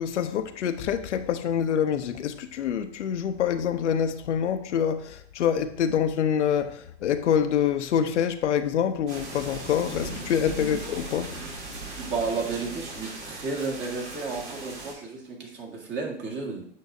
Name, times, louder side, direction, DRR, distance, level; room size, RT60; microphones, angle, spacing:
voice 1, 0.0-11.4, left 8 dB, 75° left, 0.7 m, -26 dB
sound 1, 9.1-14.9, right 2 dB, 70° right, 3.1 m, -38 dB
voice 2, 12.0-16.6, right 4 dB, 30° right, 1.8 m, -32 dB
8.2 x 6.2 x 2.7 m
hypercardioid pair, 105°, 35 cm